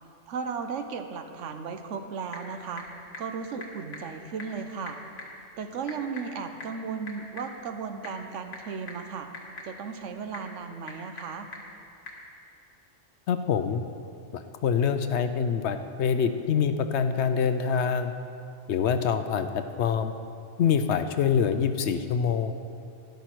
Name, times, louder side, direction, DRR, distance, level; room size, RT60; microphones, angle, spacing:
voice 1, 0.3-2.8 3.2-5.0 5.6-9.3 9.6-11.5, right 5 dB, 85° right, 7 dB, 1.1 m, -35 dB
Typing / Telephone, 1.8-12.3, left 2 dB, 90° left, 2.0 m, -46 dB
voice 2, 13.3-13.8 14.3-18.1 18.7-20.1 20.6-22.5, left 7 dB, 70° left, 9 dB, 0.8 m, -25 dB
13.0 x 10.5 x 4.5 m, 2.6 s
omnidirectional pair, 1.2 m